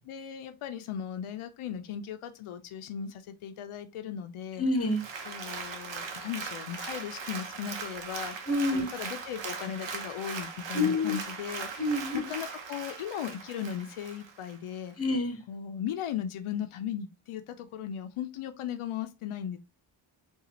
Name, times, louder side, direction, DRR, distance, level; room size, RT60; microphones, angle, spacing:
voice 1, 0.1-4.7 5.3-11.9 12.1-15.0 15.5-19.6, left 9 dB, 90° left, 0.6 m, -37 dB
voice 2, 4.6-5.0 8.5-8.9 10.7-11.2 11.8-12.2 15.0-15.4, left 2 dB, 30° left, 0.8 m, -27 dB
Applause, 4.8-14.6 15.0-15.1, right 5 dB, 65° right, 0.9 m, -39 dB
4.0 x 2.4 x 2.8 m
wide cardioid pair, 140°, 48 cm